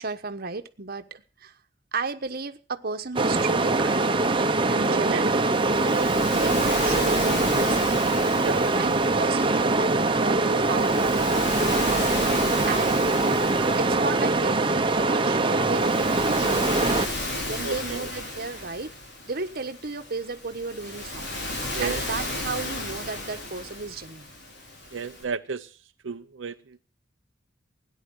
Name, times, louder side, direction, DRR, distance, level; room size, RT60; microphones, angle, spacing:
voice 1, 0.0-1.5 1.9-4.2 4.7-5.3 6.3-7.8 8.7-12.1 12.7-13.0 13.7-16.9 17.4-18.9 19.3-21.3 21.8-24.3, right 4 dB, 55° right, 8 dB, 1.2 m, -34 dB
sound 1, 3.2-17.1, right 2 dB, 25° right, 1.0 m, -23 dB
voice 2, 4.9-5.2 5.9-6.3 8.4-8.7 17.6-18.0 21.7-22.0 24.9-25.7 26.0-26.5, right 5 dB, 85° right, 7 dB, 0.7 m, -32 dB
Waves surf, 5.3-25.2, left 1 dB, 60° left, 4.9 m, -35 dB
17.5 x 10.0 x 6.3 m, 0.37 s
head